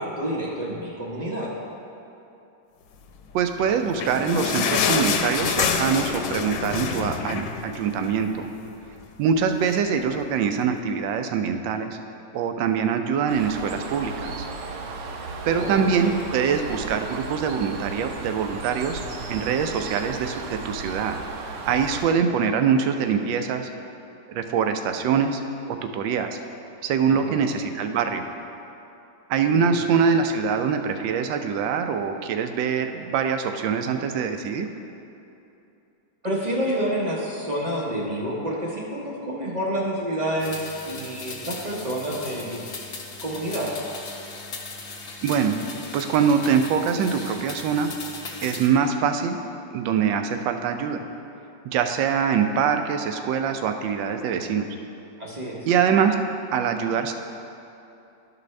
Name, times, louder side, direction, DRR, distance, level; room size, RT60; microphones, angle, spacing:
voice 1, 0.0-1.5 15.5-16.1 27.1-27.4 29.5-29.7 36.2-40.6 40.8-42.6 43.2-43.7 55.2-55.6, right 1 dB, 45° right, -4 dB, 0.5 m, -28 dB
voice 2, 3.3-8.5 9.2-12.0 12.3-14.4 15.5-19.0 19.3-21.2 21.7-23.7 24.3-25.4 25.7-26.4 26.8-28.3 29.3-34.7 45.2-45.6 45.9-47.9 48.4-49.4 49.7-51.0 51.6-54.7 55.7-56.2 56.5-57.1, right 6 dB, 85° right, 7 dB, 1.3 m, -24 dB
sound 1, 3.5-8.3 8.7-8.8 9.0-9.2 9.9-10.0, left 6 dB, 85° left, 1.3 m, -26 dB
Bird, 13.3-22.1, right 4 dB, 65° right, 0.9 m, -35 dB
sound 2, 40.4-48.7, left 3 dB, 55° left, 0.7 m, -38 dB
12.0 x 5.1 x 3.2 m, 2.8 s
omnidirectional pair, 2.0 m